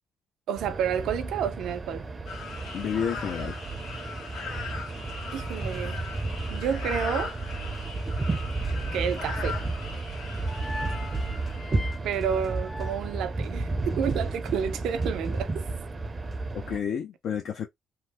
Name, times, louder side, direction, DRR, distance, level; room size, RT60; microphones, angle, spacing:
voice 1, 0.5-2.0 5.3-6.1 6.5-7.3 8.9-9.6 12.0-15.6, right 8 dB, 80° right, 0.5 m, -30 dB
sound 1, 0.6-16.8, right 3 dB, 30° right, 0.5 m, -32 dB
sound 2, 2.3-12.0, left 5 dB, 90° left, 1.4 m, -39 dB
voice 2, 2.7-3.6 16.7-17.7, left 8 dB, 70° left, 0.5 m, -30 dB
sound 3, 9.8-14.0, left 1 dB, 20° left, 0.6 m, -42 dB
3.0 x 2.0 x 3.3 m
cardioid pair, 90°, 0 cm